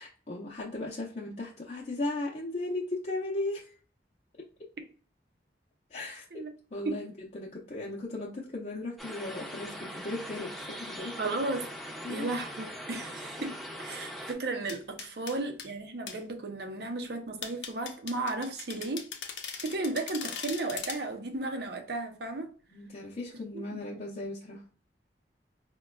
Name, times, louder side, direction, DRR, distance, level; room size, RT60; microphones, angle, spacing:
voice 1, 0.0-3.8 5.9-6.4 6.7-11.3 12.0-12.3 22.7-24.6, left 2 dB, 40° left, 0.6 m, -37 dB
sound 1, 9.0-14.3, equal, ahead, 0.7 m, -41 dB
voice 2, 11.2-11.7 12.1-19.1 19.6-22.5 23.5-23.8, right 2 dB, 65° right, 0.6 m, -34 dB
sound 2, 14.7-15.7 16.1-16.2 17.4-21.0, left 7 dB, 80° left, 0.6 m, -40 dB
4.7 x 2.2 x 2.3 m
head